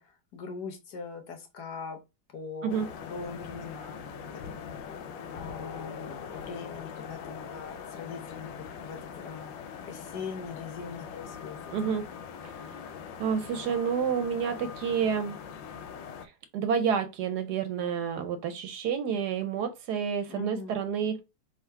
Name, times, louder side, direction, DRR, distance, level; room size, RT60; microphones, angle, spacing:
voice 1, 0.0-2.0 2.3-4.0 4.3-4.9 5.3-11.7 20.3-20.7, left 5 dB, 65° left, 1.3 m, -41 dB
sound 1, 2.7-16.3, left 6 dB, 85° left, 1.3 m, -42 dB
voice 2, 11.7-12.1 12.4-12.5 13.2-15.4 16.2-21.2, right 7 dB, 70° right, 1.1 m, -29 dB
3.7 x 2.6 x 4.5 m
omnidirectional pair, 2.0 m